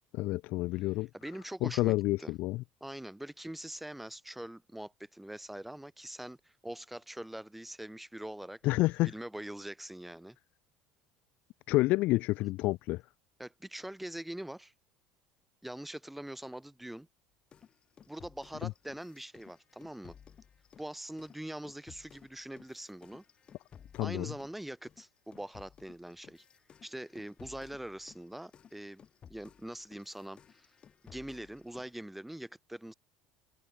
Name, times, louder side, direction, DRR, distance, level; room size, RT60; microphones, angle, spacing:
voice 1, 0.2-1.1 1.6-2.6 8.6-9.1 11.7-13.0 23.9-24.3, left 19 dB, 65° left, 0.8 m, -29 dB
voice 2, 1.1-2.3 2.8-8.6 9.0-10.4 13.4-14.7 15.6-17.1 18.1-20.1 20.8-23.2 24.0-26.4 26.8-30.7 31.0-32.9, right 1 dB, 5° right, 6.0 m, -43 dB
sound 1, 17.5-24.6 24.9-32.0, left 8 dB, 40° left, 4.4 m, -57 dB
supercardioid pair, 90°, 3 cm